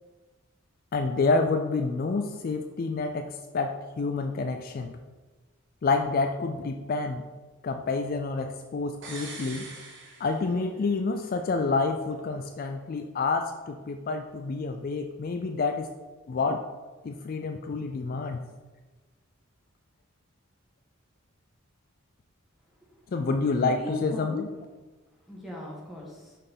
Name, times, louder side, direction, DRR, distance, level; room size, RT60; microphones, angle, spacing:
voice 1, 0.9-5.0 5.8-7.2 7.6-9.7 10.2-15.9 16.3-16.6 17.0-18.4 23.1-24.5, left 3 dB, 45° left, 5 dB, 0.3 m, -28 dB
sound 1, 9.0-10.9 11.2-11.3, right 3 dB, 60° right, 1.1 m, -43 dB
voice 2, 23.6-24.7 25.3-26.4, left 2 dB, ahead, -4 dB, 1.5 m, -40 dB
5.5 x 4.2 x 5.3 m, 1.3 s
head